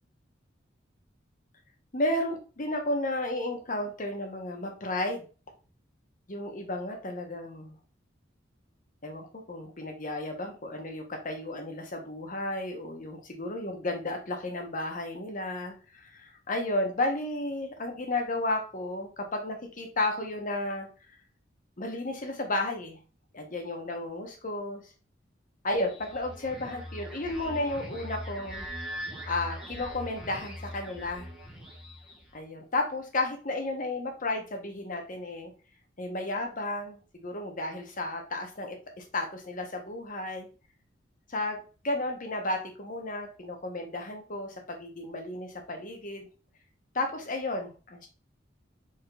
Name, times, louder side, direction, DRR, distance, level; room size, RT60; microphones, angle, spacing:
voice 1, 1.9-5.3 6.3-7.7 9.0-20.9 21.8-23.0 23.3-24.8 25.6-28.7 29.3-31.3 32.3-35.5 36.0-40.5 41.3-46.3 46.9-48.1, left 2 dB, 45° left, 3 dB, 1.1 m, -33 dB
sound 1, 25.7-32.4, equal, 5° right, 1.3 m, -41 dB
5.0 x 4.2 x 2.5 m, 0.35 s
head